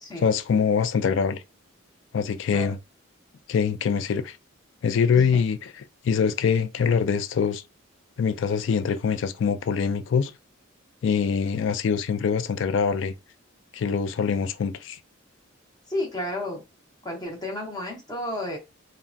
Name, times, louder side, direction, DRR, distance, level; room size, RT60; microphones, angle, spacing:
voice 1, 0.2-1.4 2.1-2.8 3.5-4.4 4.8-7.6 8.2-10.3 11.0-13.1 13.7-15.0, left 6 dB, 60° left, 0.3 m, -24 dB
voice 2, 15.9-16.6 17.0-18.6, left 1 dB, 20° left, 0.8 m, -32 dB
3.3 x 2.1 x 2.5 m
head